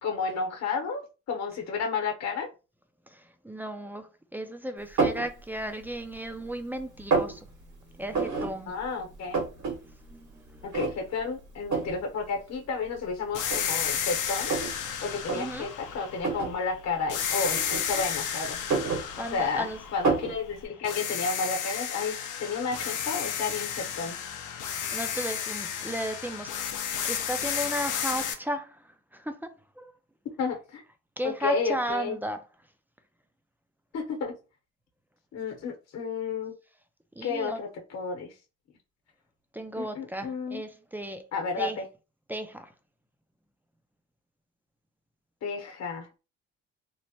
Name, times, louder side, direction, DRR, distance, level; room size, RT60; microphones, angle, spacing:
voice 1, 0.0-2.5 8.7-9.5 10.6-14.5 15.0-18.6 19.2-24.2 30.4-30.8 31.2-32.2 33.9-34.3 35.3-36.5 37.2-38.3 39.8-40.6 41.3-41.8 45.4-46.2, left 4 dB, 60° left, 1.0 m, -32 dB
voice 2, 3.1-7.5 7.9-8.8 9.8-10.7 15.3-15.7 19.2-19.8 24.7-26.6 27.0-28.9 29.1-29.5 29.8-29.9 31.2-32.4 37.2-37.6 39.5-41.3 41.6-41.8 42.3-42.7, equal, 5° right, 0.4 m, -35 dB
sound 1, 5.0-5.3 5.8-6.5 6.8-7.3 8.1-8.5 8.8-8.9 9.1-9.7 10.1-10.2 10.7-11.2 11.7-12.0 12.8-12.9 13.4-14.8 15.2-15.4 16.2-16.5 17.5-18.2 18.5-19.6 20.0-20.4, right 4 dB, 70° right, 1.6 m, -28 dB
sound 2, 13.3-16.6 17.1-20.5 20.8-28.3, left 8 dB, 80° left, 0.6 m, -32 dB
3.0 x 2.1 x 2.8 m
cardioid pair, 90°, 30 cm